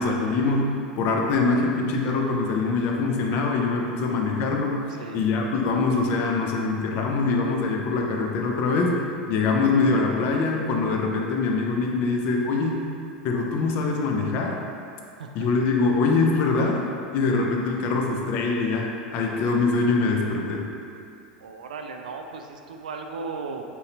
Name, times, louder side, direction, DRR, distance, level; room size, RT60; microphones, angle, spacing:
voice 1, 0.0-12.9 13.2-14.6 15.3-16.9 17.1-20.7, left 3 dB, 50° left, 1 dB, 0.6 m, -24 dB
voice 2, 15.2-15.5 21.4-23.6, right 4 dB, 75° right, 4 dB, 0.3 m, -36 dB
4.0 x 3.9 x 2.8 m, 2.5 s
hypercardioid pair, 85°, 4 cm